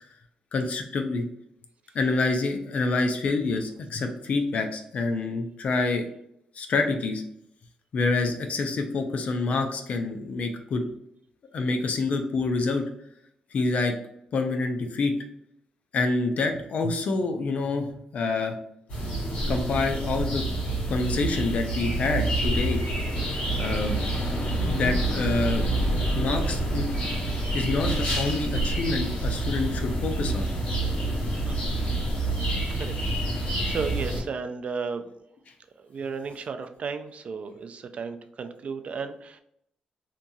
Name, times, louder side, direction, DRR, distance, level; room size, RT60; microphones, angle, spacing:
voice 1, 0.5-1.2 1.9-6.0 6.6-7.2 7.9-10.8 11.5-12.8 13.5-13.9 14.3-15.1 15.9-17.9 18.1-18.6 19.5-20.4 20.9-22.8 23.6-24.1 24.6-25.7 26.1-26.9 27.5-30.5, left 3 dB, 65° left, 5 dB, 0.5 m, -27 dB
sound 1, 18.9-34.2, right 1 dB, 85° left, 1.4 m, -27 dB
voice 2, 33.2-35.0 35.9-39.4, right 5 dB, 55° right, 8 dB, 0.3 m, -34 dB
2.9 x 2.3 x 2.6 m, 0.73 s
cardioid pair, 80°, 3 cm